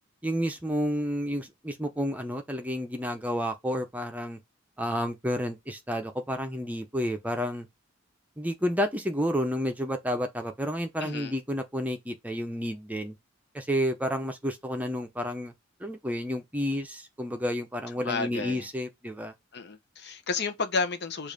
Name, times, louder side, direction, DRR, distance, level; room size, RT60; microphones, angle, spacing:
voice 1, 0.2-4.4 4.8-7.7 8.4-13.1 13.5-15.5 15.8-19.3, equal, 10° right, 0.7 m, -30 dB
voice 2, 11.0-11.3 18.0-18.7 19.5-21.3, left 4 dB, 55° left, 0.9 m, -31 dB
7.0 x 2.6 x 5.2 m
head